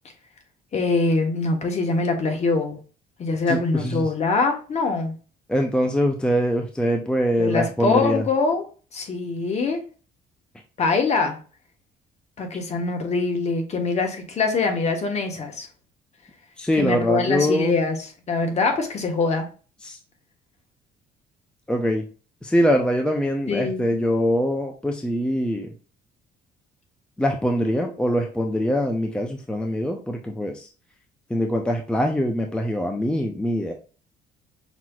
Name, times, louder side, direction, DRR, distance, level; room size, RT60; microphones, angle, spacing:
voice 1, 0.7-2.8 3.2-5.1 7.4-8.7 8.9-9.8 10.8-11.4 12.4-15.7 16.8-18.0 18.3-19.5 23.5-23.9, left 3 dB, 40° left, 4 dB, 1.3 m, -23 dB
voice 2, 3.5-4.1 5.5-8.2 16.6-17.8 19.8-20.0 21.7-22.1 22.4-25.7 27.2-30.7 31.3-33.7, equal, 5° left, 3 dB, 0.6 m, -23 dB
5.9 x 2.9 x 2.4 m, 0.37 s
cardioid pair, 110°, 17 cm